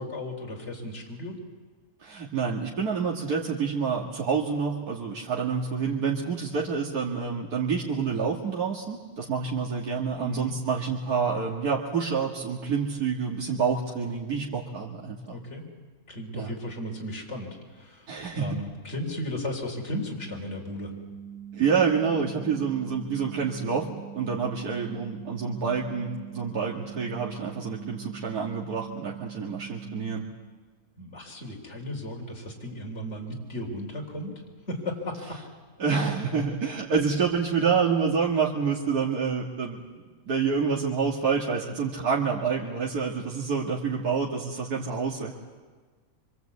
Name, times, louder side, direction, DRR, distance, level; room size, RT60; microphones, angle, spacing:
voice 1, 0.0-1.4 10.2-10.5 15.3-15.7 16.1-20.9 31.0-35.4, left 1 dB, 45° left, 0 dB, 3.9 m, -35 dB
voice 2, 2.0-15.4 16.3-16.5 18.1-18.5 21.5-23.9 24.1-30.2 35.8-39.8 40.3-45.3, right 5 dB, 80° right, -3 dB, 2.4 m, -28 dB
sound 1, 20.2-30.2, right 9 dB, ahead, 1.9 m, -42 dB
25.5 x 25.0 x 8.3 m, 1.5 s
omnidirectional pair, 1.6 m